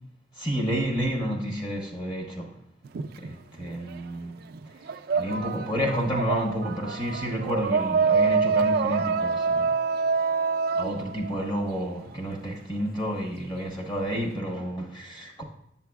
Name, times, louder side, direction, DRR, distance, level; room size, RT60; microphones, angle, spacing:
voice 1, 0.4-2.6 3.2-4.4 5.1-9.8 10.7-15.4, equal, 25° left, 1.1 m, -30 dB
sound 1, 2.8-4.1 4.4-12.2, right 5 dB, 55° right, 0.3 m, -26 dB
7.7 x 7.5 x 2.3 m
head